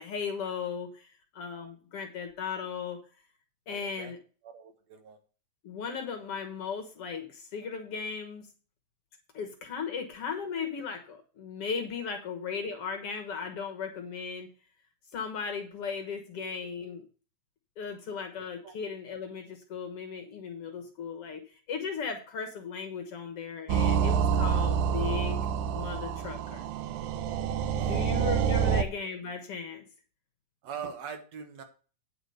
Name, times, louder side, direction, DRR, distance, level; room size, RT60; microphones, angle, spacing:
voice 1, 0.0-3.0 3.7-4.2 5.6-8.5 9.3-14.5 15.1-17.0 17.8-25.4 25.7-26.6 27.8-29.9, left 6 dB, 55° left, 5 dB, 2.0 m, -36 dB
voice 2, 3.7-4.1 4.4-5.2 16.4-16.5 18.6-18.7 24.7-24.9 27.7-28.1 28.5-28.7 30.6-31.6, right 7 dB, 65° right, 6 dB, 2.3 m, -42 dB
sound 1, 23.7-28.8, right 7 dB, 80° right, 2.1 m, -27 dB
9.5 x 5.0 x 6.4 m, 0.37 s
omnidirectional pair, 3.5 m